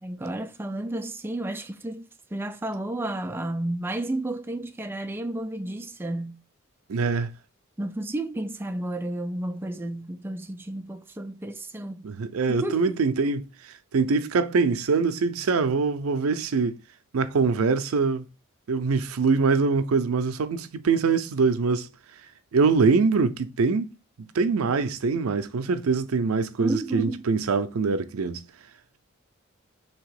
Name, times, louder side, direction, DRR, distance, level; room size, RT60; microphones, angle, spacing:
voice 1, 0.0-6.4 7.8-12.1 12.5-13.0 26.6-27.2, right 1 dB, 10° right, 0.3 m, -32 dB
voice 2, 6.9-7.3 12.0-13.5 13.9-16.8 17.1-18.2 18.7-21.9 22.5-23.9 24.3-28.4, right 4 dB, 90° right, 0.5 m, -23 dB
3.5 x 2.9 x 4.7 m
head